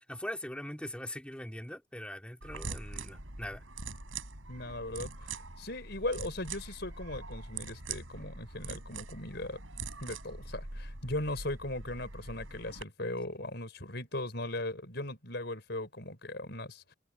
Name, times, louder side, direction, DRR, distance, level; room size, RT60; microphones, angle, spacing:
voice 1, 0.1-3.6, left 1 dB, 5° left, 2.1 m, -41 dB
sound 1, 2.4-12.8, right 3 dB, 80° right, 6.5 m, -43 dB
voice 2, 4.5-9.6 10.0-16.9, left 1 dB, 55° left, 5.9 m, -38 dB
head